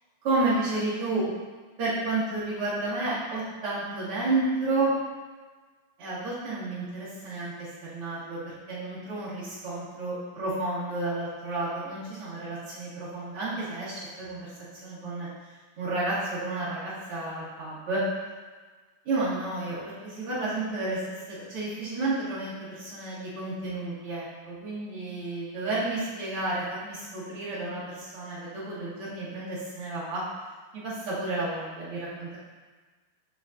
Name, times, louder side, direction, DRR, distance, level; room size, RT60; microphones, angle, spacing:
voice 1, 0.2-1.2 1.8-4.9 6.0-7.5 7.8-8.4 8.7-14.5 14.8-15.3 15.8-18.0 19.1-21.0 21.3-30.2 30.7-32.4, right 2 dB, 45° right, -10 dB, 2.0 m, -31 dB
8.3 x 6.6 x 2.6 m, 1.4 s
omnidirectional pair, 5.1 m